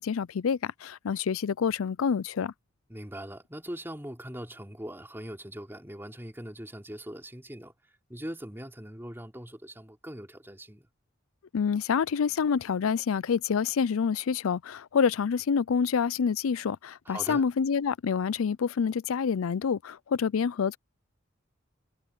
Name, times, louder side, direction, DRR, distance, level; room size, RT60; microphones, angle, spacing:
voice 1, 0.0-2.5 11.5-20.8, left 6 dB, 85° left, 0.4 m, -27 dB
voice 2, 2.9-7.7 8.1-10.9 17.1-17.4, equal, 10° right, 4.1 m, -41 dB
head